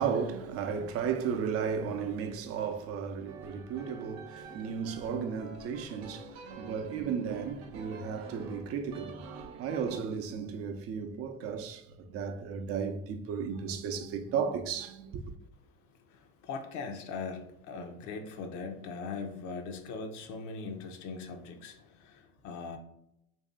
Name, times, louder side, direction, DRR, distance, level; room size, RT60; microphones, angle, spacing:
voice 1, 0.0-15.2, right 6 dB, 45° right, 0.6 m, -34 dB
sound 1, 3.3-10.0, right 4 dB, 80° right, 0.8 m, -47 dB
voice 2, 16.1-22.8, left 4 dB, 60° left, 0.7 m, -40 dB
3.1 x 2.7 x 3.6 m
supercardioid pair, 115°, 32 cm